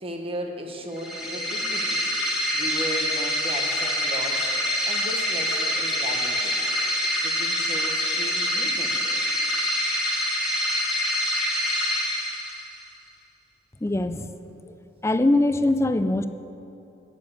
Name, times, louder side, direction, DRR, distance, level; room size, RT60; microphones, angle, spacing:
voice 1, 0.0-2.0 2.5-4.5 4.8-6.6 7.2-9.0, right 1 dB, 30° right, 2 dB, 1.2 m, -36 dB
sound 1, 0.9-12.9, equal, 5° right, 1.9 m, -26 dB
voice 2, 13.8-14.3 14.7-14.8 15.0-16.3, left 2 dB, 15° left, 10 dB, 0.4 m, -22 dB
9.8 x 7.5 x 8.5 m, 2.9 s
head